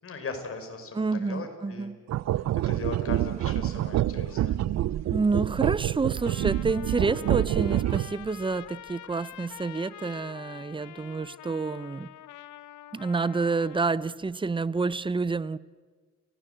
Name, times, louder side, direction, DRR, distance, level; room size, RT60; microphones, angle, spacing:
voice 1, 0.0-1.9 2.7-4.6 13.3-13.4, left 4 dB, 45° left, 5.0 m, -38 dB
voice 2, 0.9-2.0 5.1-12.1 12.9-15.6, right 4 dB, 15° right, 0.7 m, -28 dB
sound 1, 2.1-8.3, right 13 dB, 60° right, 0.6 m, -27 dB
sound 2, 3.1-9.7, right 6 dB, 45° right, 1.8 m, -44 dB
Trumpet, 6.2-13.9, left 13 dB, 80° left, 0.9 m, -46 dB
30.0 x 16.5 x 8.0 m
cardioid pair, 90°, 30 cm